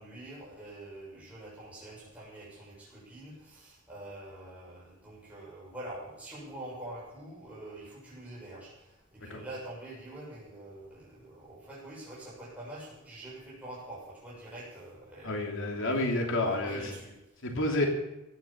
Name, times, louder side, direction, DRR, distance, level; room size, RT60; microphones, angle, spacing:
voice 1, 0.0-15.8 16.4-17.1, right 1 dB, 5° right, -7 dB, 7.0 m, -45 dB
voice 2, 15.2-16.9 17.4-17.9, left 2 dB, 60° left, 2 dB, 3.1 m, -29 dB
16.0 x 11.0 x 7.2 m, 0.97 s
head